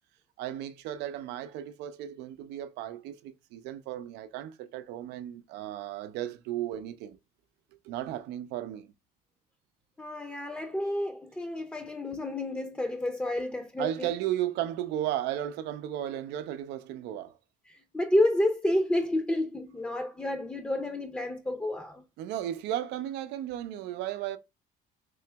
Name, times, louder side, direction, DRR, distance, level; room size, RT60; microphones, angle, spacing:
voice 1, 0.4-7.2 7.8-8.9 13.8-17.4 22.2-24.4, right 12 dB, 90° right, 0.5 m, -35 dB
voice 2, 10.0-14.1 17.7-22.0, left 1 dB, 5° left, 0.6 m, -30 dB
3.7 x 2.9 x 3.3 m
cardioid pair, 110°, 17 cm